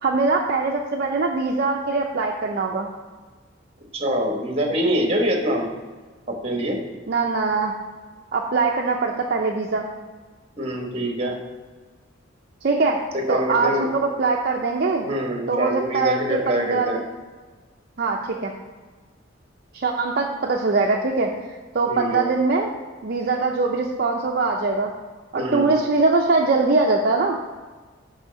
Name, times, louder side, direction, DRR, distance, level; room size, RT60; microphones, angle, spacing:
voice 1, 0.0-2.9 7.1-7.7 8.3-9.9 12.6-13.0 13.3-15.1 15.5-17.0 18.0-18.5 19.7-21.3 21.7-22.7 23.0-24.9 25.3-27.4, right 3 dB, 50° right, 0 dB, 0.5 m, -22 dB
voice 2, 3.9-5.7 6.3-6.8 10.6-11.3 13.1-13.9 15.0-17.0 21.9-22.2 25.3-25.7, equal, 30° right, 1 dB, 1.3 m, -24 dB
6.3 x 5.6 x 5.1 m, 1.4 s
head